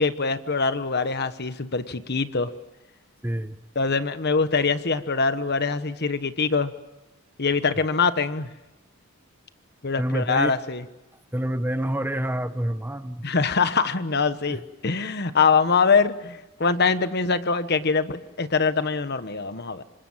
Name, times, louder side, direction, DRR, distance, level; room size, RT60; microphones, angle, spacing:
voice 1, 0.0-2.5 3.7-6.7 7.4-8.5 9.8-10.8 13.2-19.8, left 4 dB, 50° left, 12 dB, 1.2 m, -23 dB
voice 2, 3.2-3.6 10.0-10.5 11.3-13.3 14.5-14.6, right 1 dB, 10° right, 10 dB, 1.0 m, -27 dB
26.5 x 26.0 x 7.4 m, 1.0 s
head